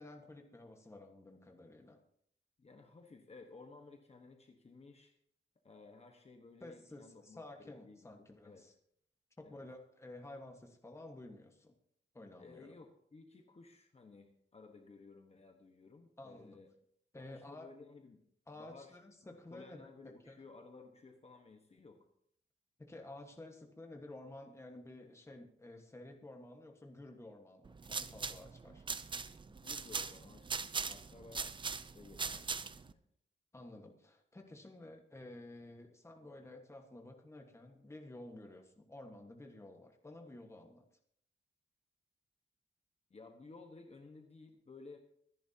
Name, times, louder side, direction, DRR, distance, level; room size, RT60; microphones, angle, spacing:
voice 1, 0.0-2.0 6.6-8.7 9.4-11.7 12.1-12.8 16.2-16.6 17.1-17.7 18.5-19.8 20.3-20.4 22.8-28.8 33.5-40.8, left 2 dB, 15° left, 3 dB, 1.4 m, -52 dB
voice 2, 2.6-5.1 5.6-8.6 9.4-9.6 12.4-16.7 17.1-18.2 18.5-19.0 19.5-22.0 29.5-33.0 43.1-45.0, left 3 dB, 30° left, 3 dB, 1.3 m, -56 dB
sound 1, 27.6-32.9, right 4 dB, 25° right, 0.4 m, -41 dB
25.0 x 10.5 x 2.9 m, 0.68 s
wide cardioid pair, 180°, 20 cm